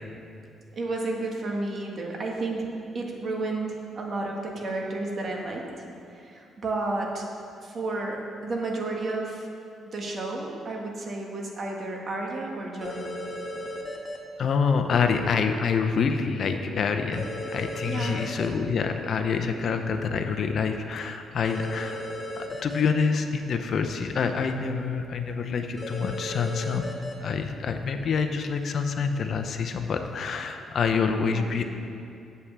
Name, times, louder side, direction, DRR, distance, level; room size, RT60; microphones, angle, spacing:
voice 1, 0.7-2.7 2.9-5.6 6.1-7.3 7.6-9.5 9.9-13.1 14.9-15.0 17.8-18.4 19.5-19.9 31.2-31.6, right 2 dB, 45° right, 0 dB, 1.6 m, -32 dB
sound 1, 12.8-14.2 17.1-18.5 21.4-22.8 25.8-27.1, left 1 dB, 30° left, 1.4 m, -35 dB
voice 2, 14.4-22.0 22.4-26.8 27.2-31.6, left 5 dB, 55° left, 6 dB, 0.7 m, -27 dB
8.1 x 5.6 x 7.4 m, 2.5 s
cardioid pair, 90°, 0 cm